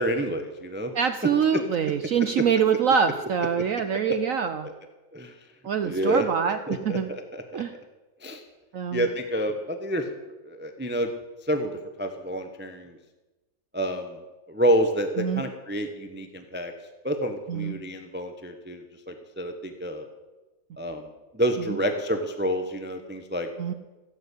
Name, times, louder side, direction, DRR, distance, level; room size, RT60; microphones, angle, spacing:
voice 1, 0.0-0.9 5.1-5.3 5.8-6.2 6.7-7.0 7.3-7.6 8.2-8.4 8.9-10.0 10.4-11.1 11.5-12.9 13.7-14.2 14.5-16.7 17.0-20.1 20.8-21.1 21.3-23.5, equal, 10° right, 6 dB, 0.8 m, -28 dB
voice 2, 0.9-4.7 5.6-7.1 7.5-7.7 8.7-9.1 15.2-15.4 17.5-17.8 21.6-21.8 23.6-23.7, right 7 dB, 65° right, 10 dB, 0.8 m, -25 dB
16.0 x 8.0 x 8.4 m, 1.1 s
omnidirectional pair, 2.0 m